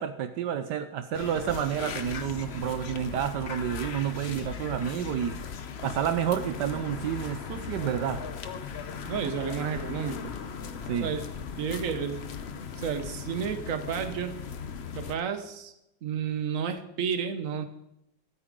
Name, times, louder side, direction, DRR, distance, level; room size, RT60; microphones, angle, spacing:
voice 1, 0.0-5.4 5.8-8.2 10.9-11.1, right 9 dB, 75° right, 9 dB, 1.3 m, -30 dB
sound 1, 1.1-15.2, left 6 dB, 50° left, 0.9 m, -38 dB
voice 2, 9.1-10.4 11.0-11.2 11.6-12.2 12.8-14.3 14.9-15.7 16.0-17.6, right 7 dB, 50° right, 9 dB, 1.4 m, -31 dB
23.5 x 8.7 x 3.7 m, 0.86 s
omnidirectional pair, 1.9 m